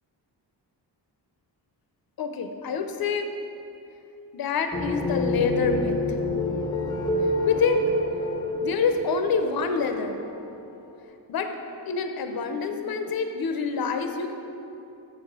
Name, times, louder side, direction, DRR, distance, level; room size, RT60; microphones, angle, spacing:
voice 1, 2.2-3.3 4.3-6.0 7.5-7.9 8.6-10.2 11.3-11.5 11.9-14.3, left 5 dB, 55° left, 6 dB, 0.6 m, -26 dB
sound 1, 4.7-10.6, left 2 dB, 10° left, 0.6 m, -28 dB
7.1 x 4.8 x 6.0 m, 2.8 s
wide cardioid pair, 130°, 44 cm